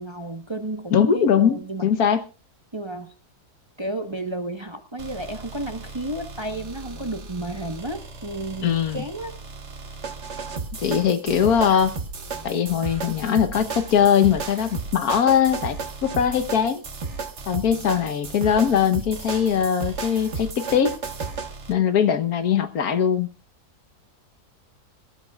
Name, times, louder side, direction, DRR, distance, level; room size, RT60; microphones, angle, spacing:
voice 1, 0.0-1.9 2.7-3.1 3.8-9.3, right 1 dB, 20° right, 6 dB, 1.0 m, -32 dB
voice 2, 0.9-2.2 8.6-9.0 10.8-12.0 12.4-16.8 17.5-21.0 21.7-23.3, left 8 dB, 70° left, 10 dB, 1.5 m, -21 dB
sound 1, 5.0-21.7, right 4 dB, 45° right, 1.7 m, -34 dB
25.0 x 13.0 x 2.4 m, 0.31 s
omnidirectional pair, 1.7 m